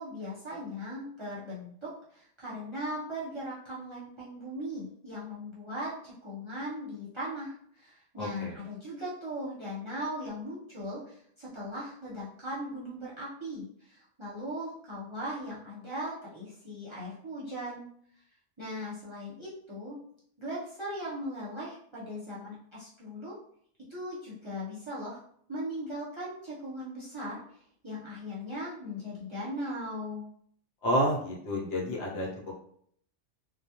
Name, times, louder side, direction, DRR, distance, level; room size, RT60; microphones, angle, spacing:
voice 1, 0.0-17.9 18.6-20.0 20.4-23.3 23.9-25.2 25.5-27.4 27.8-30.3, equal, 30° right, -9 dB, 0.6 m, -38 dB
voice 2, 8.2-8.6 30.8-32.5, equal, 75° left, -2 dB, 1.0 m, -30 dB
2.3 x 2.1 x 2.8 m, 0.64 s
omnidirectional pair, 1.2 m